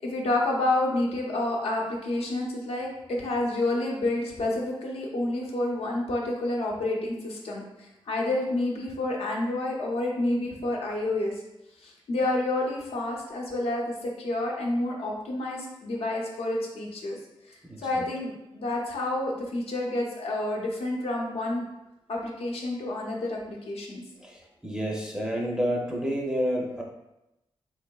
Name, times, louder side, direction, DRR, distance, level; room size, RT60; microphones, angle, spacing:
voice 1, 0.0-7.6 8.1-11.3 11.8-17.2 17.5-21.6 22.1-24.0, left 2 dB, 85° left, -1 dB, 0.7 m, -29 dB
voice 2, 17.6-18.1 24.2-26.8, equal, 5° right, -2 dB, 0.5 m, -30 dB
3.7 x 3.3 x 2.3 m, 0.91 s
wide cardioid pair, 145°, 10 cm